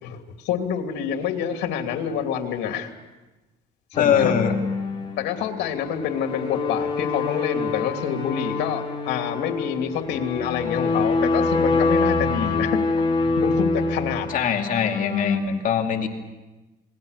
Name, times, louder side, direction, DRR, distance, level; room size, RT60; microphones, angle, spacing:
voice 1, 0.0-2.9 3.9-4.3 5.2-12.8 13.2-14.3, left 8 dB, 80° left, 5 dB, 2.9 m, -27 dB
sound 1, 3.9-15.4, left 3 dB, 30° left, 5.2 m, -25 dB
voice 2, 4.0-4.5 14.3-16.1, left 8 dB, 55° left, 3 dB, 2.5 m, -22 dB
28.5 x 21.5 x 6.7 m, 1.1 s
cardioid pair, 110°, 17 cm